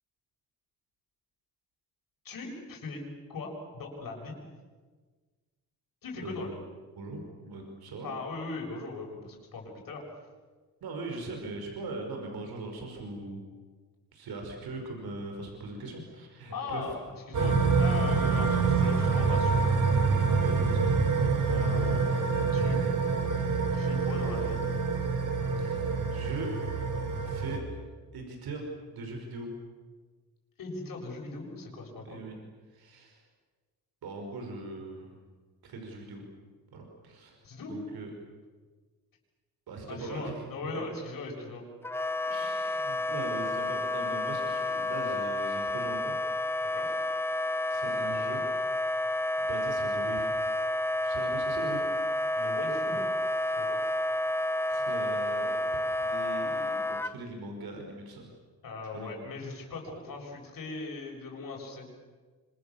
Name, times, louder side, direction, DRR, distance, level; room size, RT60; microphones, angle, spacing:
voice 1, 2.2-3.0 3.3-4.4 6.0-6.5 8.0-10.0 16.5-19.6 21.4-22.2 22.5-22.8 23.7-24.6 30.6-32.2 37.4-37.7 39.9-41.6 46.6-47.0 52.4-53.1 53.5-53.8 58.6-61.9, left 3 dB, 65° left, 0 dB, 7.5 m, -39 dB
voice 2, 7.0-8.1 10.8-13.4 14.1-16.9 18.2-18.7 20.4-20.8 25.6-26.5 27.2-27.6 28.1-29.5 32.0-32.3 32.7-33.2 34.0-35.2 35.6-36.2 36.7-37.4 37.7-38.1 39.7-40.9 42.3-46.2 47.7-48.4 49.4-50.4 51.0-51.9 54.7-58.3 58.9-59.2, right 3 dB, 85° right, 2 dB, 5.7 m, -40 dB
sound 1, 17.3-27.6, right 4 dB, 55° right, 4.5 m, -26 dB
Wind instrument woodwind instrument, 41.8-57.1, left 1 dB, 5° left, 0.7 m, -30 dB
27.5 x 26.0 x 7.3 m, 1.4 s
cardioid pair, 125°, 36 cm